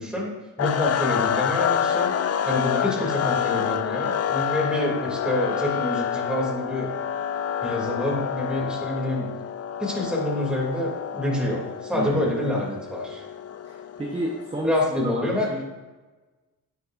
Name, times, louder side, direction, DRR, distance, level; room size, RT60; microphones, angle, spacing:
voice 1, 0.0-2.1 2.4-6.9 7.6-9.3 9.8-13.3 14.6-15.5, left 1 dB, 5° right, -3 dB, 2.9 m, -27 dB
sound 1, 0.6-14.7, left 8 dB, 50° left, 0.5 m, -28 dB
voice 2, 11.9-12.3 13.6-15.6, right 1 dB, 20° right, -1 dB, 1.1 m, -31 dB
10.5 x 9.7 x 2.7 m, 1.2 s
wide cardioid pair, 125°, 33 cm